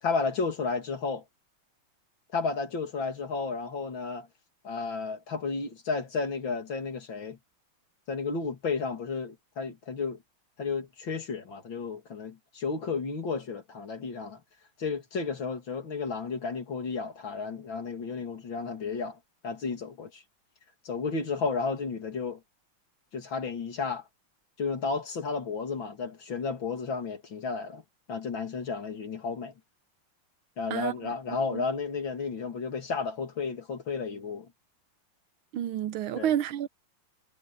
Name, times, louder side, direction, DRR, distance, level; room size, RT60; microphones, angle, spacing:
voice 1, 0.0-1.2 2.3-4.3 4.6-7.4 8.1-10.2 10.6-14.4 14.8-19.2 19.4-20.2 20.8-22.4 23.1-24.0 24.6-27.8 28.1-29.5 30.6-34.5 36.2-36.3, left 4 dB, 65° left, 3.4 m, -32 dB
voice 2, 35.5-36.7, right 10 dB, 80° right, 1.6 m, -29 dB
omnidirectional pair, 2.3 m